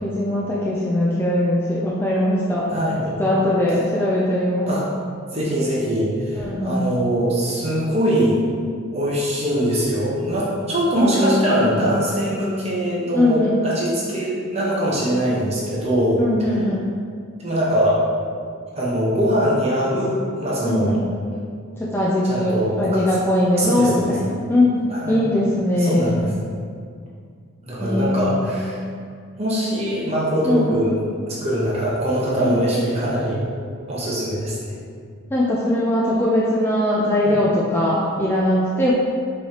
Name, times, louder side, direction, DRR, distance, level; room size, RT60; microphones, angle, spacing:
voice 1, 0.0-2.7 3.2-4.7 6.3-6.8 11.0-11.7 13.1-13.6 16.2-16.8 20.6-21.0 21.8-26.3 27.8-28.5 30.5-30.8 32.4-32.7 35.3-38.9, left 1 dB, 10° left, -6 dB, 0.3 m, -20 dB
voice 2, 2.7-3.2 4.7-4.8 5.3-8.4 8.9-16.2 17.4-18.0 18.7-21.0 22.3-23.0 23.6-24.1 24.9-25.3 25.8-26.2 27.6-28.8 29.4-30.9 31.3-33.4 33.9-34.7 37.2-37.4, equal, 30° right, -6 dB, 0.9 m, -22 dB
5.4 x 3.2 x 2.8 m, 2.2 s
head